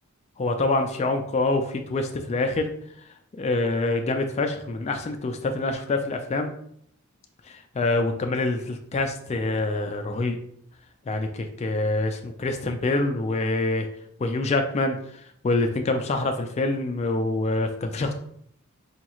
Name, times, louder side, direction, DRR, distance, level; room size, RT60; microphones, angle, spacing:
voice 1, 0.4-2.7 3.4-6.5 7.5-10.4 11.1-13.9 14.2-15.0 15.4-18.1, left 2 dB, 30° left, 5 dB, 0.3 m, -25 dB
5.0 x 2.3 x 2.9 m, 0.68 s
head